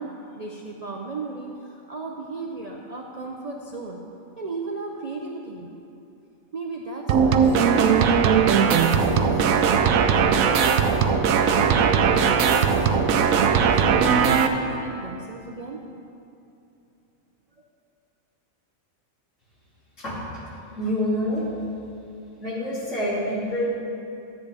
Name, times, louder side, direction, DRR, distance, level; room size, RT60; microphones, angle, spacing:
voice 1, 0.0-4.0 4.4-5.7 6.5-10.7 11.0-15.8, right 3 dB, 45° right, -1 dB, 0.5 m, -35 dB
sound 1, 7.1-14.5, right 6 dB, 90° right, 1.0 m, -19 dB
voice 2, 20.7-21.4 22.4-23.7, left 1 dB, 65° left, -8 dB, 3.1 m, -26 dB
13.0 x 8.5 x 3.4 m, 2.7 s
omnidirectional pair, 1.4 m